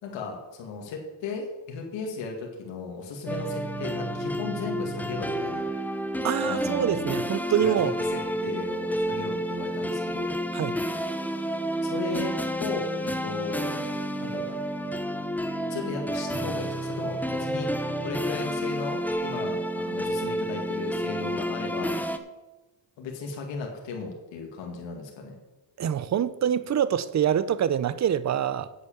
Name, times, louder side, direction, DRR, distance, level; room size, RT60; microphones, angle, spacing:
voice 1, 0.0-5.7 6.4-7.1 7.6-10.4 11.8-13.7 14.2-14.6 15.7-17.7 18.0-22.0 23.0-25.4, left 4 dB, 75° left, 2.3 m, -36 dB
sound 1, 3.3-22.2, equal, 5° left, 0.8 m, -30 dB
voice 2, 6.2-8.0 10.5-10.8 25.8-28.7, right 9 dB, 40° right, 0.7 m, -25 dB
8.4 x 8.2 x 7.2 m
cardioid pair, 95°, 44 cm